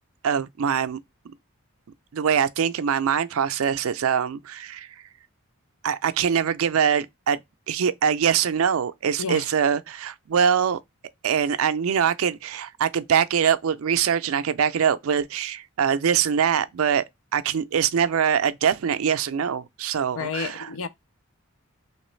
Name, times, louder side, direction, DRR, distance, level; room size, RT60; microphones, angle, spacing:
voice 1, 0.2-1.0 2.1-5.0 5.8-7.4 7.7-10.8 11.2-17.0 17.3-20.7, right 7 dB, 75° right, 0.4 m, -23 dB
voice 2, 20.2-20.9, left 5 dB, 70° left, 0.5 m, -30 dB
3.1 x 2.9 x 3.1 m
head